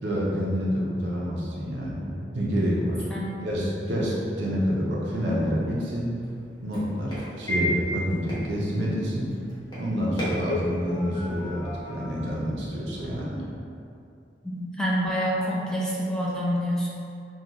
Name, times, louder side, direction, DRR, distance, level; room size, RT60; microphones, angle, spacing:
voice 1, 0.0-3.0 3.4-6.1 6.6-9.3 9.7-13.4, equal, 75° right, -5 dB, 0.7 m, -28 dB
sound 1, 5.3-13.2, equal, 25° left, 0.9 m, -35 dB
voice 2, 14.4-16.9, equal, 5° left, -6 dB, 0.4 m, -27 dB
3.7 x 2.4 x 2.9 m, 2.6 s
head